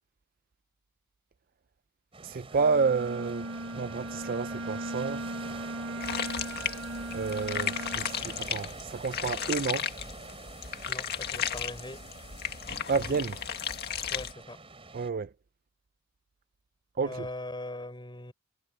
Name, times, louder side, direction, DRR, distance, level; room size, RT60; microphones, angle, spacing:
sound 1, 2.1-15.1, right 3 dB, 25° right, 3.7 m, -46 dB
voice 1, 2.2-3.5 3.7-5.2 7.1-9.9 12.9-13.4 14.9-15.3 17.0-17.3, right 5 dB, 45° right, 0.5 m, -30 dB
Bowed string instrument, 2.5-8.6, right 1 dB, 70° right, 6.0 m, -38 dB
sound 2, 6.0-14.3, left 8 dB, 50° left, 1.9 m, -35 dB
voice 2, 10.9-12.0 14.1-14.6 17.0-18.3, left 2 dB, 20° left, 5.8 m, -40 dB
head